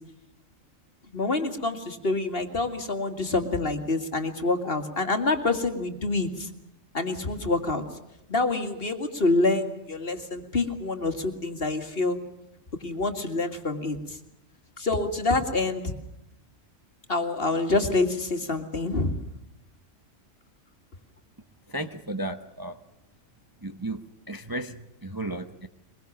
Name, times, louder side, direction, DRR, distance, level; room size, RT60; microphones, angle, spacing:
voice 1, 1.1-6.5 6.9-7.8 8.3-12.2 12.8-14.2 14.8-15.8 17.1-19.2, left 2 dB, 45° left, 7 dB, 2.3 m, -27 dB
voice 2, 21.7-22.8 23.6-25.7, right 1 dB, 20° right, 7 dB, 0.9 m, -34 dB
22.5 x 22.0 x 7.3 m, 0.85 s
omnidirectional pair, 1.4 m